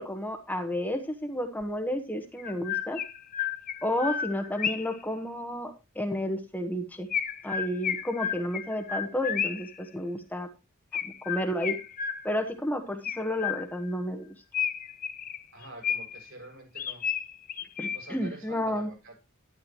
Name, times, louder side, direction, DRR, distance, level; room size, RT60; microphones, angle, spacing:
voice 1, 0.0-3.0 3.8-7.1 7.4-10.5 11.2-11.8 12.2-14.3 17.8-18.9, equal, 10° left, 4 dB, 1.2 m, -31 dB
Chirp tweet, 1.6-1.7 2.4-5.0 7.1-9.8 10.9-12.5 13.0-13.9 14.5-16.3 16.8-18.3, left 8 dB, 40° left, 0.9 m, -32 dB
voice 2, 15.5-17.1 17.9-19.2, right 1 dB, 65° right, 1 dB, 7.4 m, -46 dB
12.0 x 11.5 x 3.1 m, 0.28 s
head